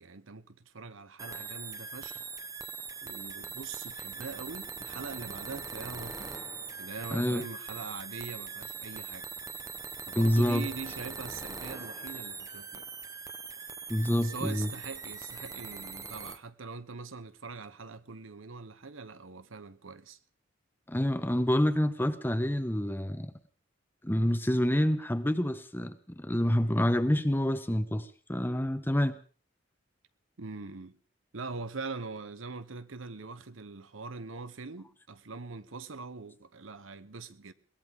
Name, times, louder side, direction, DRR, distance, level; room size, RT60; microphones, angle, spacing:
voice 1, 0.0-2.2 3.0-6.3 6.8-9.3 10.0-12.9 14.2-20.2 30.4-31.0 31.3-37.5, right 4 dB, 80° right, 1.0 m, -42 dB
sound 1, 1.2-16.4, right 5 dB, 15° right, 0.8 m, -41 dB
voice 2, 7.1-7.5 10.1-10.7 13.9-14.7 20.9-23.3 24.0-29.2, equal, 10° left, 1.0 m, -27 dB
22.0 x 18.0 x 3.6 m
head